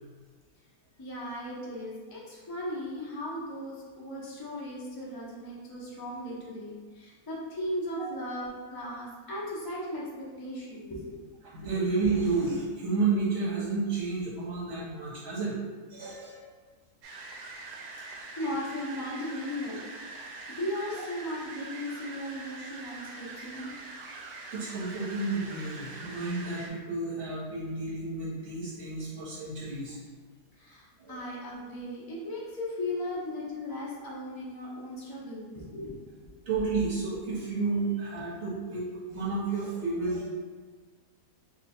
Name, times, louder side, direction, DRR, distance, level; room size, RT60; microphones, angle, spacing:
voice 1, 1.0-11.3 18.4-19.8 20.5-23.7 30.6-36.0 36.2-36.3, left 1 dB, 25° left, -6 dB, 0.4 m, -37 dB
voice 2, 11.4-15.6 15.9-16.4 24.1-24.2 24.5-30.0 31.0-31.2 33.1-33.2 36.5-40.3, right 3 dB, 60° right, -7 dB, 1.4 m, -31 dB
sound 1, 17.0-26.7, right 3 dB, 80° right, 1.1 m, -43 dB
2.9 x 2.4 x 4.2 m, 1.5 s
omnidirectional pair, 1.7 m